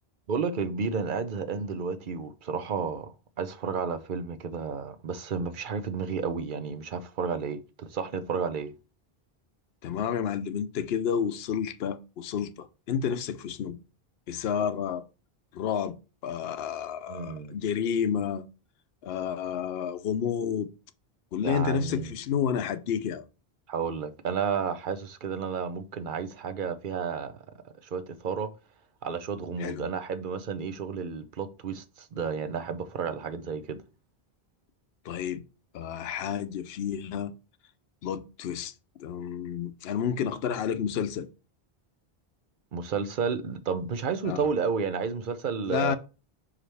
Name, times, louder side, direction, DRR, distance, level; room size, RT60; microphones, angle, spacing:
voice 1, 0.3-8.7 17.1-17.6 21.4-22.1 23.7-27.4 27.8-28.5 29.0-33.8 42.7-46.0, right 6 dB, 55° right, 0.8 m, -32 dB
voice 2, 9.8-13.8 14.3-15.0 15.5-16.0 16.2-18.4 19.0-20.7 21.3-23.2 29.6-29.9 35.1-35.4 35.7-37.3 38.0-38.7 39.0-41.3 44.2-44.4 45.7-46.0, left 8 dB, 75° left, 0.8 m, -30 dB
5.7 x 4.9 x 3.3 m
omnidirectional pair, 1.0 m